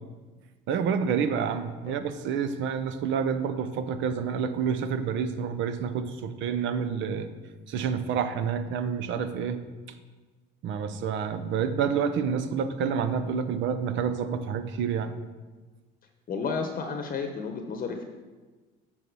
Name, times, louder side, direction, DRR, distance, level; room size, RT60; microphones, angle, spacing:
voice 1, 0.7-7.3 7.7-9.6 10.6-15.1, right 7 dB, 65° right, 10 dB, 0.7 m, -28 dB
voice 2, 16.3-18.0, left 5 dB, 40° left, 5 dB, 0.9 m, -31 dB
7.7 x 5.5 x 4.8 m, 1.3 s
supercardioid pair, 90°, 21 cm